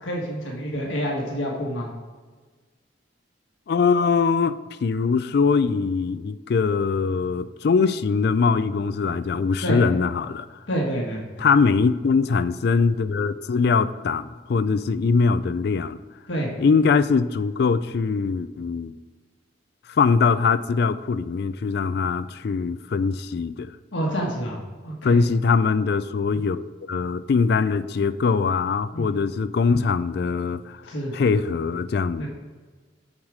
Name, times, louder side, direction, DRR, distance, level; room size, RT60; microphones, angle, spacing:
voice 1, 0.0-1.9 9.6-9.8 10.7-11.5 16.3-16.5 23.9-24.6 24.8-25.3 28.9-29.1 30.9-31.1 32.2-32.3, equal, 90° left, -2 dB, 1.6 m, -28 dB
voice 2, 3.7-10.5 11.4-16.0 16.6-18.9 19.9-23.8 25.0-30.8 31.1-32.3, left 5 dB, 60° left, 13 dB, 0.3 m, -22 dB
7.2 x 6.5 x 4.9 m, 1.4 s
head